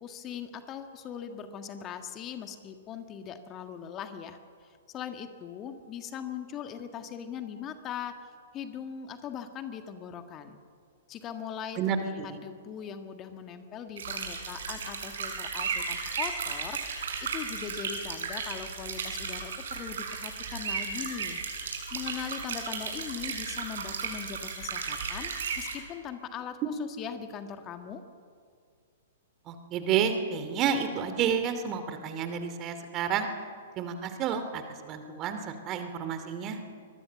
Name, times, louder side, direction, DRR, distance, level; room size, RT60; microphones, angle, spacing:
voice 1, 0.0-10.6 11.1-21.4 21.9-28.0, left 8 dB, 25° left, 7 dB, 1.7 m, -40 dB
voice 2, 11.8-12.4 29.5-33.3 33.8-36.6, right 7 dB, 30° right, 8 dB, 2.7 m, -30 dB
sound 1, 14.0-25.8, right 5 dB, 60° right, 6.1 m, -35 dB
24.0 x 22.0 x 7.1 m, 2.2 s
figure-of-eight pair, 110°, 0 cm